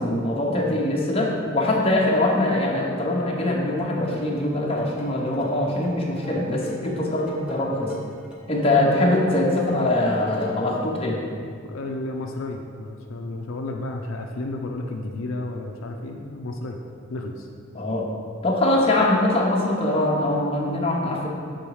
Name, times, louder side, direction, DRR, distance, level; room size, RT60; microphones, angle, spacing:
voice 1, 0.0-7.9 8.5-11.2 17.7-18.1 18.4-21.3, left 1 dB, 30° left, -2 dB, 0.9 m, -22 dB
sound 1, 3.8-10.8, right 2 dB, 5° right, 0.8 m, -40 dB
voice 2, 11.6-16.8 17.1-17.5, left 2 dB, 75° left, 2 dB, 0.5 m, -32 dB
7.0 x 3.9 x 4.7 m, 2.2 s
head